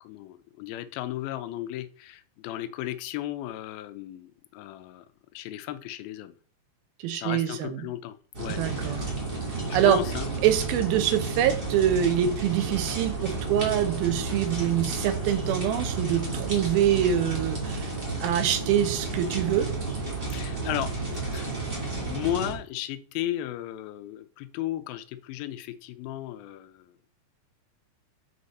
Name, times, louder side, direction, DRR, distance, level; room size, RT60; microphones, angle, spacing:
voice 1, 0.0-5.1 5.3-6.3 7.1-9.0 9.7-10.3 20.3-26.9, left 13 dB, 80° left, 10 dB, 2.4 m, -35 dB
voice 2, 7.0-7.9 8.5-9.0 9.7-10.0 10.4-17.9 18.2-19.7, right 10 dB, 80° right, 9 dB, 2.6 m, -25 dB
sound 1, 8.3-22.5, right 3 dB, 20° right, 1.5 m, -32 dB
6.5 x 4.9 x 4.1 m, 0.43 s
omnidirectional pair, 4.3 m